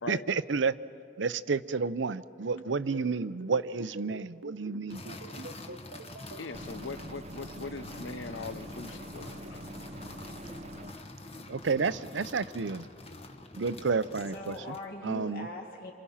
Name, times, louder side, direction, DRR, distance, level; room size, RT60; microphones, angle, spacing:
voice 1, 0.1-0.7 1.2-5.0 11.5-12.9 13.6-14.5 15.0-15.5, right 4 dB, 75° right, 14 dB, 0.6 m, -30 dB
sound 1, 2.5-6.4, right 2 dB, 90° right, 1.1 m, -44 dB
sound 2, 4.9-14.9, left 2 dB, 30° left, 1.4 m, -46 dB
voice 2, 6.4-9.7, left 4 dB, 80° left, 13 dB, 0.8 m, -41 dB
sound 3, 6.5-10.9, right 1 dB, 35° right, 0.7 m, -45 dB
voice 3, 14.1-15.9, left 1 dB, 50° left, 0 dB, 3.1 m, -41 dB
27.5 x 27.0 x 5.7 m, 2.4 s
head